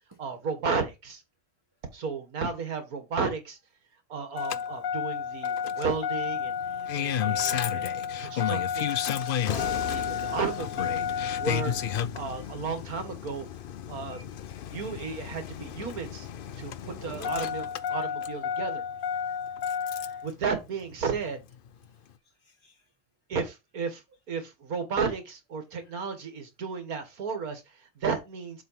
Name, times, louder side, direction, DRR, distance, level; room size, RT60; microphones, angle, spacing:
voice 1, 0.2-1.2 1.9-3.6 4.1-7.9 8.2-9.0 9.5-11.0 11.4-11.8 12.1-13.5 13.9-14.2 14.6-16.3 16.6-16.7 17.0-18.8 19.9-21.4 23.3-28.6, right 5 dB, 80° right, 2.2 m, -33 dB
Engine starting, 4.4-20.3 21.5-21.6, left 8 dB, 70° left, 0.5 m, -31 dB
voice 2, 14.1-14.9 16.8-17.3 19.3-20.2 22.2-22.8, right 1 dB, 15° right, 1.3 m, -57 dB
7.6 x 3.7 x 5.6 m
omnidirectional pair, 1.5 m